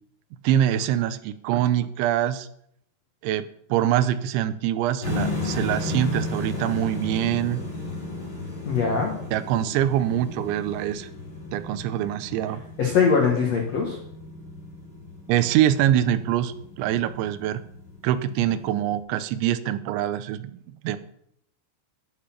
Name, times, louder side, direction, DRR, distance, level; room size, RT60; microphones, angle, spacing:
voice 1, 0.4-2.5 3.2-7.6 9.3-11.1 11.5-12.6 15.3-17.6 18.0-20.6 20.8-21.0, right 11 dB, 85° right, 13 dB, 3.1 m, -24 dB
sound 1, 5.0-19.0, left 2 dB, 15° left, 3.2 m, -35 dB
voice 2, 8.6-9.1 12.8-14.0, left 5 dB, 75° left, 0 dB, 1.5 m, -22 dB
13.5 x 6.7 x 5.8 m, 0.72 s
omnidirectional pair, 5.3 m